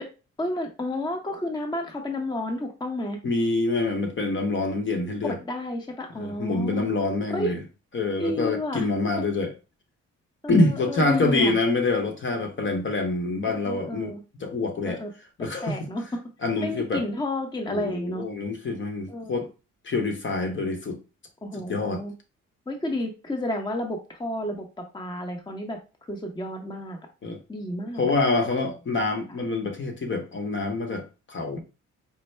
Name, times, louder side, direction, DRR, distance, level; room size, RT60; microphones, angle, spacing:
voice 1, 0.4-3.2 5.2-6.9 7.3-7.5 8.2-8.9 10.4-11.6 13.4-14.2 14.9-15.1 15.6-16.2 16.6-18.2 19.1-19.3 21.4-22.1 22.7-25.8 26.1-27.0 27.5-28.1, left 1 dB, 15° left, 0.8 m, -31 dB
voice 2, 3.2-5.4 6.2-7.6 7.9-9.5 10.5-14.1 14.4-15.0 15.4-15.8 16.4-17.0 17.7-19.5 19.8-21.0 21.7-22.0 27.2-27.4 28.0-31.6, left 3 dB, 40° left, 0.9 m, -26 dB
4.4 x 2.0 x 3.2 m
cardioid pair, 90°, 30 cm